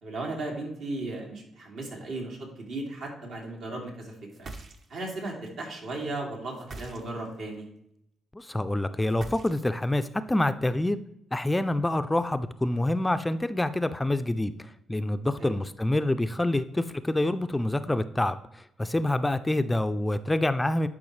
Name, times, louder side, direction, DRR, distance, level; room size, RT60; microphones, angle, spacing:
voice 1, 0.0-4.5 4.9-7.7 15.4-15.6, right 2 dB, 75° right, -1 dB, 2.5 m, -36 dB
sound 1, 4.3-5.2 6.5-7.4 9.1-9.9, right 3 dB, 50° right, 0.9 m, -43 dB
voice 2, 8.3-11.0 11.3-20.9, left 1 dB, 10° left, 11 dB, 0.4 m, -27 dB
11.0 x 4.8 x 3.2 m, 0.79 s
cardioid pair, 90°, 0 cm